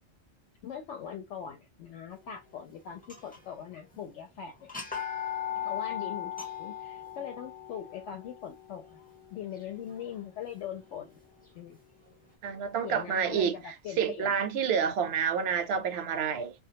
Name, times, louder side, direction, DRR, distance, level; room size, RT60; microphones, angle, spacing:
voice 1, 0.6-4.7 5.6-9.0 9.3-11.2 11.5-11.8 12.8-14.4, left 8 dB, 90° left, 0.9 m, -41 dB
sound 1, 3.0-3.6 3.9-4.0 4.6-10.5, left 9 dB, 10° left, 0.5 m, -38 dB
voice 2, 12.4-16.5, right 7 dB, 70° right, 0.8 m, -29 dB
2.2 x 2.1 x 2.7 m
omnidirectional pair, 1.2 m